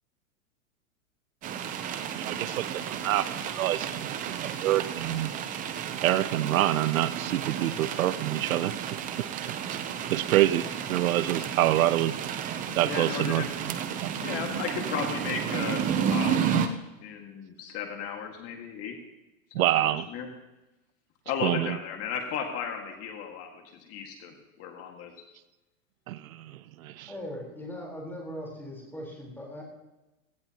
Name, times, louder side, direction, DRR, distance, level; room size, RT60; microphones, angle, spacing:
sound 1, 1.4-16.7, right 8 dB, 20° right, 0.6 m, -32 dB
voice 1, 2.2-5.3 6.0-8.7 9.2-9.8 10.1-12.2 12.8-13.8 14.0-14.1 19.5-20.1 21.4-21.8 26.1-27.1, right 14 dB, 75° right, 16 dB, 0.7 m, -27 dB
voice 2, 12.8-13.5 14.2-16.7 17.0-19.0 19.6-20.3 21.3-25.1, left 7 dB, 35° left, 3 dB, 1.9 m, -35 dB
voice 3, 27.1-29.6, equal, 5° left, -2 dB, 4.0 m, -39 dB
17.5 x 15.0 x 2.9 m, 1.0 s
supercardioid pair, 145°, 42 cm